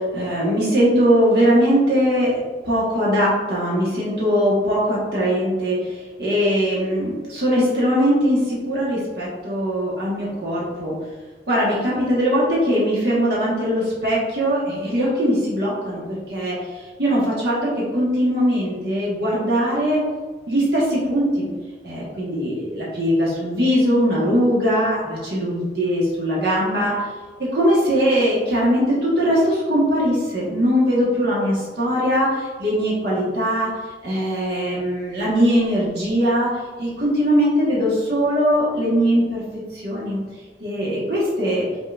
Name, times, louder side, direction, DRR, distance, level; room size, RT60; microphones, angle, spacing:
voice 1, 0.1-2.4 2.6-5.8 6.2-10.9 11.5-16.5 17.0-20.0 20.5-21.5 21.8-26.9 27.5-32.3 32.6-33.7 34.0-36.5 36.8-39.4 39.8-40.2 40.6-41.6, equal, 65° right, -6 dB, 1.3 m, -20 dB
5.2 x 4.1 x 2.4 m, 1.4 s
head